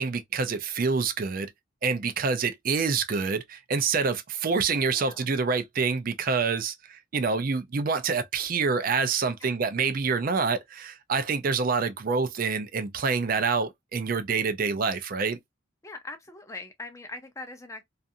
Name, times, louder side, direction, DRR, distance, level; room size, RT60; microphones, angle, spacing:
voice 1, 0.0-1.5 1.8-15.4, right 5 dB, 45° right, 0.4 m, -27 dB
voice 2, 4.9-5.3 9.4-9.6 15.8-17.8, left 2 dB, 15° left, 0.5 m, -41 dB
2.5 x 2.4 x 2.6 m
head